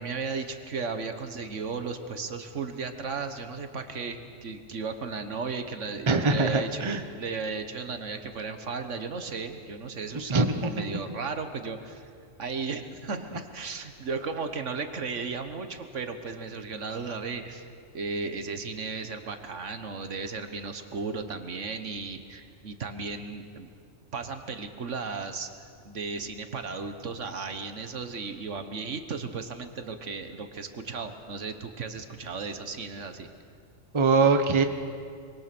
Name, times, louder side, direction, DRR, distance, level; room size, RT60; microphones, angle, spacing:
voice 1, 0.0-6.9 7.1-12.1 12.4-17.7 17.9-23.7 24.1-25.5 25.8-33.3, right 4 dB, 65° right, 8 dB, 1.6 m, -35 dB
voice 2, 6.1-7.0 10.3-10.5 10.8-10.9 33.9-34.6, right 4 dB, 25° right, 7 dB, 1.0 m, -22 dB
24.5 x 23.5 x 6.1 m, 2.3 s
omnidirectional pair, 1.3 m